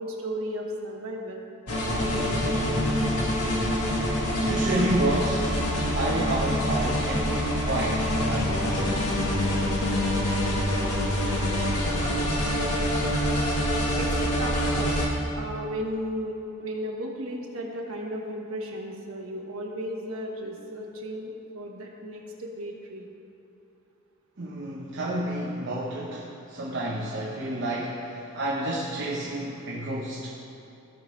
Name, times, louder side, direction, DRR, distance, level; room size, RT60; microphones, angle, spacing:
voice 1, 0.0-1.4 1.8-2.9 12.8-12.9 13.9-15.0 15.3-23.1, equal, 70° right, -1 dB, 1.3 m, -35 dB
sound 1, 1.7-15.1, equal, 90° left, 1.5 m, -25 dB
voice 2, 4.4-5.6 5.9-9.3 24.4-30.4, right 1 dB, 55° right, -5 dB, 0.9 m, -30 dB
16.0 x 5.5 x 3.2 m, 2.9 s
head